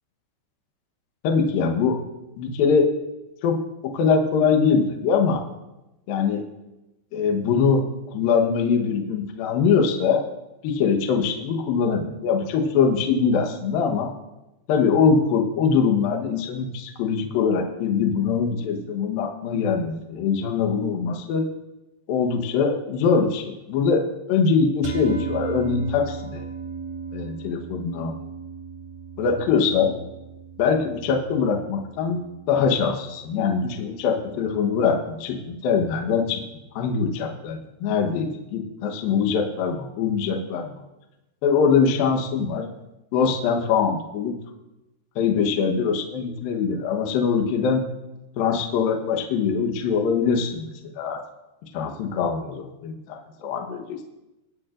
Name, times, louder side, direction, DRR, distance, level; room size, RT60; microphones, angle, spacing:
voice 1, 1.2-2.0 2.4-2.9 3.4-5.4 6.1-6.4 7.1-10.2 10.6-14.1 14.7-21.5 22.1-26.5 27.1-28.1 29.2-30.0 30.6-32.2 32.5-36.4 36.7-40.7 41.4-42.7 43.1-44.3 45.2-47.8 48.4-50.7 51.0-51.2 51.7-54.0, left 5 dB, 70° left, 4 dB, 2.5 m, -22 dB
sound 1, 24.8-35.3, right 5 dB, 65° right, 1.8 m, -37 dB
24.0 x 9.4 x 2.5 m, 0.97 s
omnidirectional pair, 5.0 m